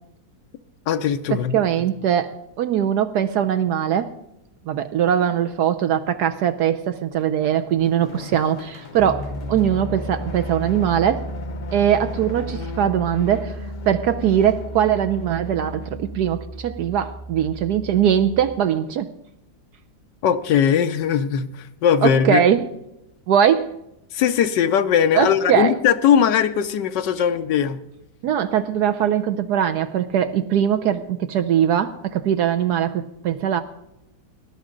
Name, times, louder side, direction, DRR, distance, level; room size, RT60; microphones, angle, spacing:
voice 1, 0.9-1.6 20.2-22.4 24.1-27.8, left 8 dB, 85° left, 1.4 m, -19 dB
voice 2, 1.5-4.1 4.7-11.3 11.7-13.6 13.8-19.1 22.0-22.6 23.3-23.7 25.1-25.7 28.2-33.6, right 9 dB, 75° right, 1.2 m, -21 dB
sound 1, 7.4-16.6, left 5 dB, 45° left, 0.6 m, -38 dB
Piano, 9.0-18.6, right 1 dB, 5° right, 0.8 m, -34 dB
19.5 x 11.5 x 3.8 m
omnidirectional pair, 1.8 m